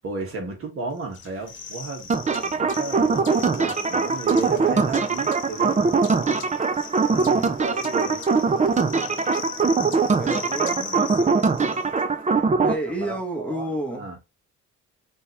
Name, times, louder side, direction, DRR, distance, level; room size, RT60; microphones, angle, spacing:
voice 1, 0.0-5.8 7.3-8.2 13.0-14.2, right 3 dB, 45° right, 1.9 m, -34 dB
sound 1, 1.1-12.0, left 6 dB, 40° left, 1.2 m, -39 dB
sound 2, 2.1-12.7, right 4 dB, 25° right, 0.7 m, -22 dB
voice 2, 7.1-7.6 10.1-11.4 12.6-14.1, right 1 dB, 5° left, 1.1 m, -31 dB
5.3 x 2.9 x 3.3 m
cardioid pair, 90°, 30 cm